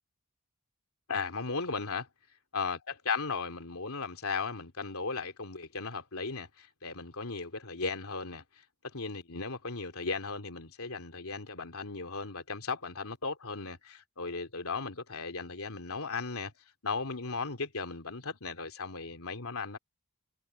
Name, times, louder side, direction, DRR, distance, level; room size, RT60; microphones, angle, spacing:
voice 1, 1.1-2.1 2.5-8.4 8.9-16.5 16.8-19.8, left 4 dB, 80° left, 2.8 m, -36 dB
head